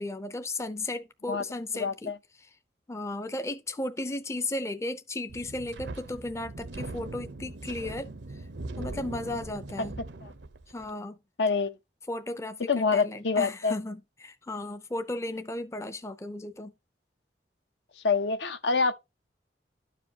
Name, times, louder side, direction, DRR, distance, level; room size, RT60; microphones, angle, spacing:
voice 1, 0.0-2.1 2.4-2.5 2.9-8.1 8.8-9.9 10.7-11.2 12.1-16.7, left 2 dB, 15° left, 0.5 m, -35 dB
voice 2, 1.7-2.2 10.2-10.3 11.4-11.8 12.7-13.7 18.0-18.9, left 4 dB, 75° left, 0.7 m, -26 dB
Wind, 5.3-10.9, right 2 dB, 75° right, 0.7 m, -40 dB
12.0 x 4.9 x 2.8 m
head